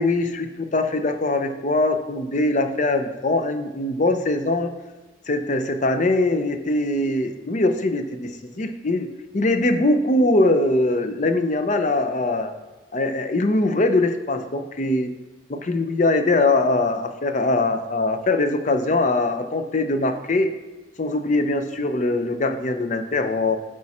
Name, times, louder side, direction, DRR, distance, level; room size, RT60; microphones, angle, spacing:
voice 1, 0.0-4.7 5.3-9.1 9.3-12.5 12.9-15.1 15.5-20.5 21.0-23.6, left 2 dB, 40° left, 8 dB, 0.6 m, -22 dB
8.5 x 4.9 x 4.3 m, 1.2 s
head